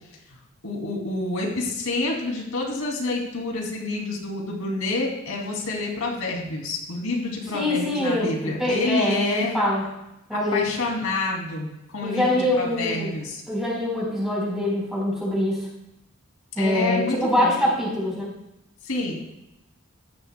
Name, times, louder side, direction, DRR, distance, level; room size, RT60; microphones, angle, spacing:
voice 1, 0.6-9.6 10.3-13.4 16.6-17.7 18.8-19.2, left 2 dB, 85° left, -1 dB, 2.6 m, -28 dB
voice 2, 7.5-9.8 10.3-10.6 12.0-13.1 13.5-15.7 16.6-18.3, left 1 dB, ahead, -4 dB, 4.0 m, -24 dB
15.0 x 11.0 x 2.2 m, 0.86 s
head